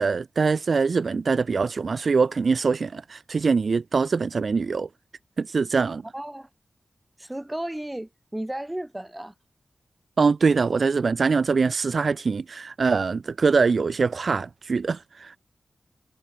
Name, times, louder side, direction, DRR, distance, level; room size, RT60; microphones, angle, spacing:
voice 1, 0.0-4.9 5.4-6.0 10.2-15.4, right 4 dB, 65° right, 1.0 m, -23 dB
voice 2, 6.1-6.5 7.2-9.3, right 1 dB, 15° right, 6.5 m, -34 dB
wide cardioid pair, 70°, 0 cm